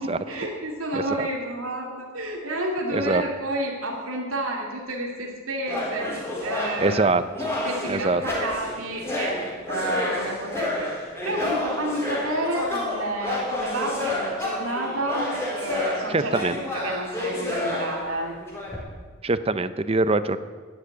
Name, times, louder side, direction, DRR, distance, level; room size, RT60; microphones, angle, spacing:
voice 1, 0.0-7.2 7.6-10.9 11.2-18.3, right 1 dB, 90° right, -1 dB, 2.5 m, -30 dB
voice 2, 0.9-1.3 2.9-3.2 6.8-7.2 7.9-8.2 16.1-16.6 19.2-20.4, right 3 dB, 30° right, 13 dB, 0.6 m, -23 dB
sound 1, 5.6-18.8, left 1 dB, 10° left, 3.8 m, -30 dB
12.5 x 10.5 x 9.1 m, 1.5 s
head